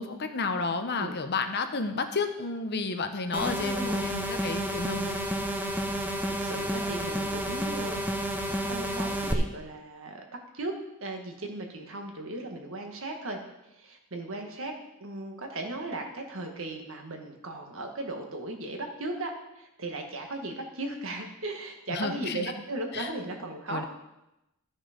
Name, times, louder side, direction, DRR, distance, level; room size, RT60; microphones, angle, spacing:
voice 1, 0.0-5.2 21.9-22.5 22.9-23.1 23.7-23.8, left 4 dB, 50° left, 7 dB, 0.9 m, -31 dB
sound 1, 3.3-9.3, right 1 dB, 10° right, 0.9 m, -31 dB
voice 2, 3.3-4.1 6.2-10.2 10.5-10.7 11.0-13.4 13.7-14.7 15.0-23.9, right 2 dB, 65° right, 3 dB, 1.6 m, -37 dB
13.0 x 6.4 x 5.1 m, 0.92 s
head